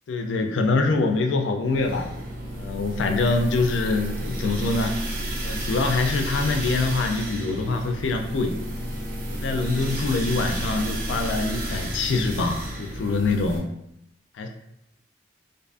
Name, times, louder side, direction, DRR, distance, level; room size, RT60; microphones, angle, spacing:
voice 1, 0.1-2.1 2.5-5.0 5.4-8.6 9.3-13.7 14.4-14.5, left 3 dB, 90° left, 5 dB, 0.3 m, -24 dB
sound 1, 1.6-13.6, right 1 dB, 50° right, 0.4 m, -31 dB
2.5 x 2.4 x 2.4 m, 0.81 s
head